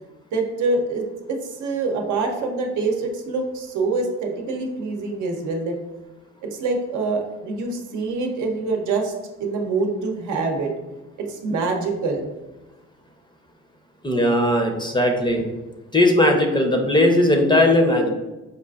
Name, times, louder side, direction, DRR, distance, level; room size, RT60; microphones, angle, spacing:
voice 1, 0.3-5.8 6.4-9.1 9.4-10.7 11.2-12.3, right 3 dB, 80° right, 2 dB, 0.7 m, -25 dB
voice 2, 14.0-15.4 15.9-18.1, left 1 dB, 15° left, 3 dB, 0.5 m, -18 dB
5.0 x 2.4 x 2.3 m, 1.1 s
cardioid pair, 90°, 30 cm